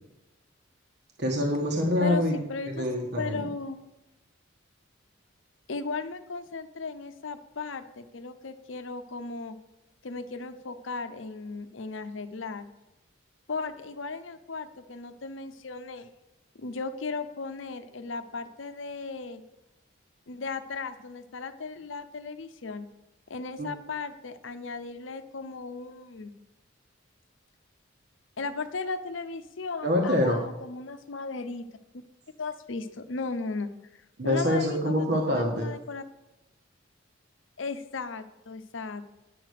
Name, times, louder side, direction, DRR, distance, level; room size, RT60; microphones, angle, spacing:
voice 1, 1.2-2.4 2.7-3.4 23.6-23.7 29.8-30.4 34.2-35.7, left 1 dB, 60° right, 0 dB, 1.4 m, -25 dB
voice 2, 2.0-2.9 3.2-3.8 5.7-9.6 10.0-12.7 13.5-16.1 16.5-19.4 20.3-22.9 23.3-26.4 28.4-31.7 32.4-36.0 37.6-39.2, left 4 dB, 75° left, 10 dB, 0.8 m, -36 dB
10.0 x 5.9 x 6.4 m, 0.94 s
head